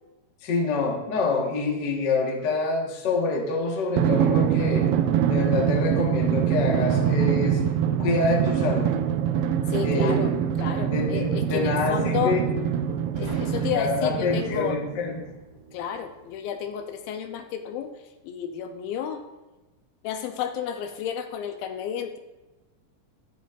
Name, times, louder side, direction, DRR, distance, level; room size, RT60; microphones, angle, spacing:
voice 1, 0.4-4.9 5.2-7.6 8.0-8.9 9.8-10.2 10.8-12.4 13.5-15.3, left 3 dB, 55° left, -1 dB, 1.1 m, -26 dB
Drum, 4.0-15.0, right 9 dB, 80° right, 2.1 m, -24 dB
voice 2, 9.7-10.3 10.6-12.4 13.1-14.8 15.7-17.9 18.2-19.2 20.0-22.2, left 8 dB, 85° left, 6 dB, 2.4 m, -31 dB
Boom, 13.2-17.0, right 2 dB, 35° right, 2.6 m, -43 dB
12.0 x 9.2 x 2.5 m, 1.1 s
omnidirectional pair, 4.4 m